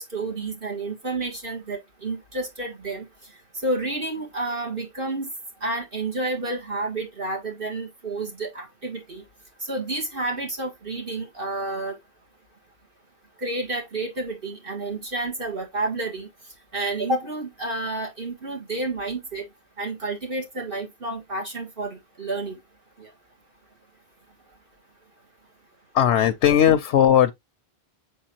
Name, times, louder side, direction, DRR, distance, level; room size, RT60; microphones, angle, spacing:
voice 1, 0.0-3.0 3.6-5.3 5.6-9.2 9.7-12.0 13.4-16.3 16.7-19.4 19.8-21.9 22.2-22.6, right 2 dB, 55° right, 1.9 m, -30 dB
voice 2, 25.9-27.3, left 10 dB, 85° left, 0.9 m, -17 dB
7.6 x 4.7 x 2.8 m
omnidirectional pair, 1.1 m